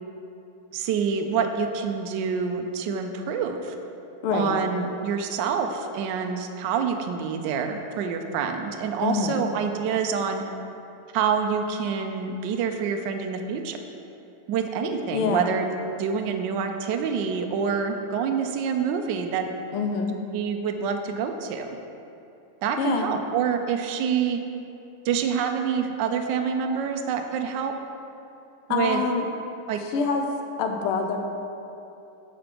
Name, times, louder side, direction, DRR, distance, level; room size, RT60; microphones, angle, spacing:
voice 1, 0.7-3.7 4.3-10.4 11.1-13.8 14.5-15.7 16.0-19.4 20.3-21.7 22.6-24.4 25.0-27.7 28.7-29.0 29.7-29.8, right 6 dB, 80° right, 5 dB, 1.0 m, -27 dB
voice 2, 9.0-9.4 15.1-15.5 19.7-20.2 22.8-23.1 28.7-29.3 29.8-30.3 30.6-31.2, left 5 dB, 80° left, 3 dB, 1.6 m, -25 dB
6.0 x 5.8 x 5.0 m, 2.8 s
omnidirectional pair, 2.4 m